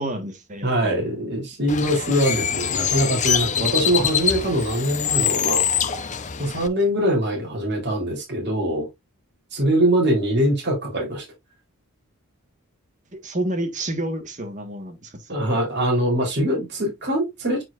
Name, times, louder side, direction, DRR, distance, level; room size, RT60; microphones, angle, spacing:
voice 1, 0.0-1.1 13.1-15.6, right 1 dB, 35° right, 1.5 m, -30 dB
voice 2, 0.6-5.7 6.4-8.9 9.5-11.3 15.3-17.6, equal, 50° right, 3.5 m, -22 dB
Bird, 1.7-6.7, left 8 dB, 35° left, 0.7 m, -24 dB
9.0 x 4.8 x 2.5 m
head